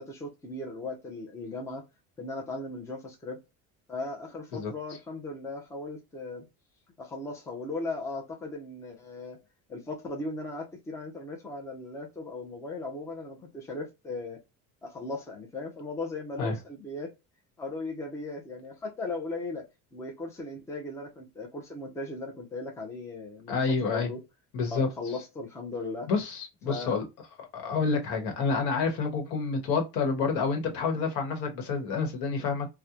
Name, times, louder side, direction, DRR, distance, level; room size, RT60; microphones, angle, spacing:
voice 1, 0.0-1.8 2.2-3.4 3.9-6.4 7.0-9.4 9.7-14.4 14.8-17.1 17.6-19.7 19.9-24.2 24.7-26.1 26.7-27.0 30.9-31.0 32.4-32.5, left 2 dB, 10° left, 0.5 m, -37 dB
voice 2, 23.5-24.1 24.5-24.9 26.1-27.0 27.5-32.7, left 4 dB, 85° left, 1.1 m, -28 dB
2.9 x 2.2 x 2.3 m
cardioid pair, 160°, 34 cm